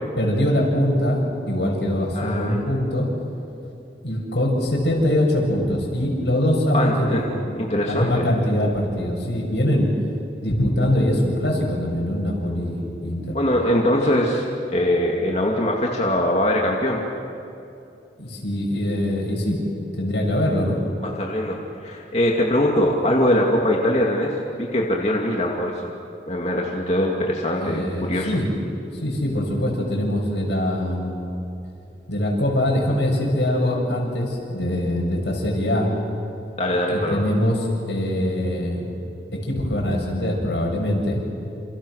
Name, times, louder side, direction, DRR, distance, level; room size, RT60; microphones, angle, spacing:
voice 1, 0.2-1.2 1.5-3.1 4.0-7.5 7.9-9.9 10.4-13.4 18.2-19.6 20.0-20.8 27.6-28.5 29.0-31.1 32.1-35.9 36.9-38.9 39.5-41.2, left 1 dB, 85° left, -1 dB, 7.5 m, -23 dB
voice 2, 2.1-2.6 6.7-7.2 7.6-8.3 13.3-17.0 21.0-25.9 26.3-28.3 36.6-37.3, left 1 dB, 35° left, -2 dB, 2.5 m, -22 dB
29.5 x 29.0 x 6.6 m, 2.7 s
head